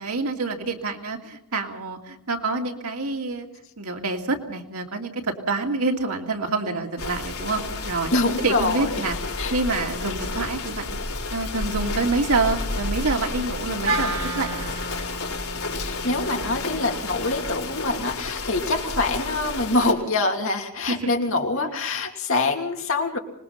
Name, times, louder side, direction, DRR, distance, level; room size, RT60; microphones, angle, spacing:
voice 1, 0.0-3.5 3.8-8.1 8.4-9.1 9.5-11.0 11.3-14.6 20.9-21.1 21.6-21.7, right 3 dB, 90° right, 2 dB, 2.7 m, -27 dB
sound 1, 7.0-19.9, left 3 dB, 80° left, 4.6 m, -31 dB
voice 2, 8.1-8.9 9.4-9.6 15.8-23.2, left 2 dB, 65° left, 2 dB, 3.0 m, -25 dB
Wind instrument woodwind instrument, 13.8-18.1, right 3 dB, 60° right, 2.8 m, -33 dB
25.5 x 20.5 x 5.8 m, 0.71 s
head